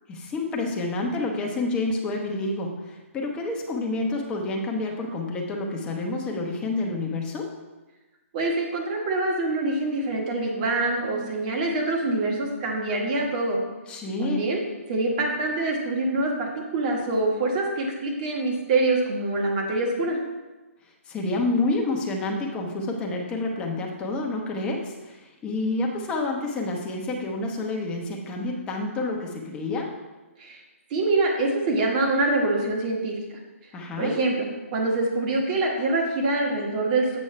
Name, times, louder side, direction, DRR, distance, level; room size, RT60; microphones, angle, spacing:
voice 1, 0.1-7.5 13.9-14.4 21.1-29.9 33.7-34.1, left 2 dB, 10° left, 0 dB, 0.9 m, -28 dB
voice 2, 8.3-13.6 14.2-14.6 14.9-20.2 30.4-30.6 30.9-33.1 34.0-37.2, right 2 dB, 35° right, -1 dB, 1.7 m, -25 dB
8.0 x 6.2 x 3.3 m, 1.1 s
hypercardioid pair, 155°, 8 cm